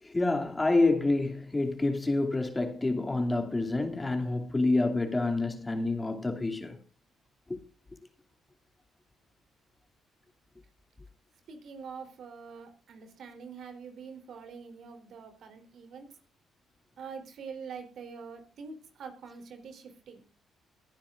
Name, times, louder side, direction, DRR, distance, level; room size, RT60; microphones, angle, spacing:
voice 1, 0.0-6.8 7.5-7.6, left 2 dB, 20° left, 2.6 m, -28 dB
voice 2, 11.5-16.2 17.0-20.2, right 5 dB, 65° right, 3.5 m, -45 dB
22.0 x 10.0 x 2.5 m
supercardioid pair, 55°, 0 cm